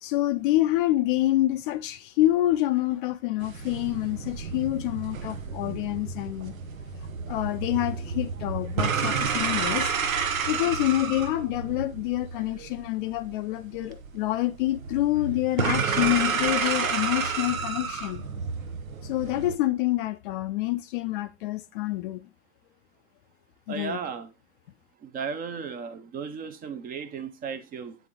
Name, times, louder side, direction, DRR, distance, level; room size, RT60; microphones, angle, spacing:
voice 1, 0.0-6.6 7.3-9.9 10.5-18.2 19.0-22.3 23.7-24.0, left 16 dB, 40° left, 0.5 m, -27 dB
sound 1, 3.4-19.6, right 6 dB, 80° right, 0.8 m, -31 dB
voice 2, 23.7-24.3 25.0-28.0, right 6 dB, 20° right, 0.6 m, -35 dB
8.3 x 3.7 x 3.7 m
figure-of-eight pair, 100°, 40 cm